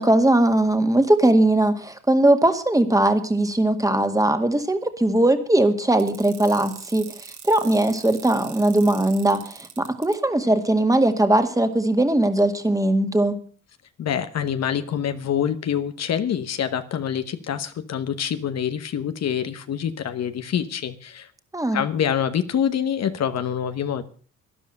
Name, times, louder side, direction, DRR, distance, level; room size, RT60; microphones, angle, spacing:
voice 1, 0.0-7.1 7.4-13.4 21.5-21.8, right 1 dB, 10° right, 8 dB, 2.0 m, -20 dB
sound 1, 6.0-10.1, right 7 dB, 65° right, 3.0 m, -41 dB
voice 2, 14.0-21.3 21.7-24.0, left 8 dB, 60° left, 10 dB, 1.2 m, -26 dB
12.5 x 11.0 x 6.5 m, 0.42 s
cardioid pair, 90°, 30 cm